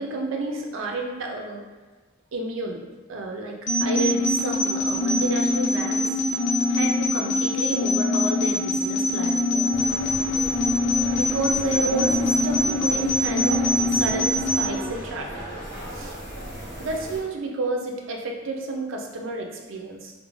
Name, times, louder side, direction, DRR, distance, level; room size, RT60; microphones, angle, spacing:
voice 1, 0.0-1.6 2.3-2.8 3.1-6.2 6.7-9.7 11.1-13.7 14.0-15.3 15.9-16.1 16.8-20.1, right 2 dB, 70° right, 1 dB, 0.4 m, -30 dB
sound 1, 3.7-14.7, left 1 dB, 55° left, 0.4 m, -23 dB
sound 2, 9.7-17.2, right 1 dB, 25° left, 1.0 m, -36 dB
2.4 x 2.0 x 3.0 m, 1.3 s
head